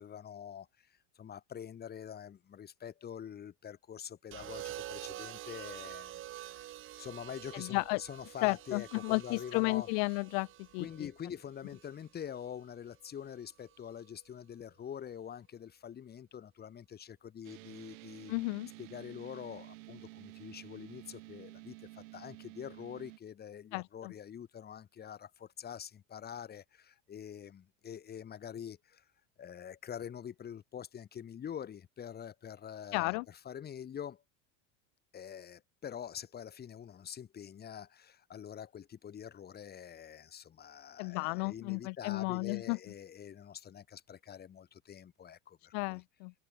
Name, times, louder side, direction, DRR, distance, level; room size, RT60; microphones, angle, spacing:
voice 1, 0.0-6.7 7.0-9.9 10.8-18.3 18.8-29.1 29.4-34.2 35.1-46.0, left 8 dB, 25° left, 2.0 m, -45 dB
sound 1, 4.3-12.5 13.7-14.1, right 14 dB, 30° right, 0.8 m, -47 dB
voice 2, 7.5-8.0 8.4-10.5 10.7-10.9 18.3-18.7 23.7-24.1 32.9-33.2 41.0-42.8 45.7-46.3, left 38 dB, 65° left, 0.5 m, -33 dB
sound 2, 17.4-23.2, right 21 dB, 80° right, 3.7 m, -51 dB
supercardioid pair, 140°, 38 cm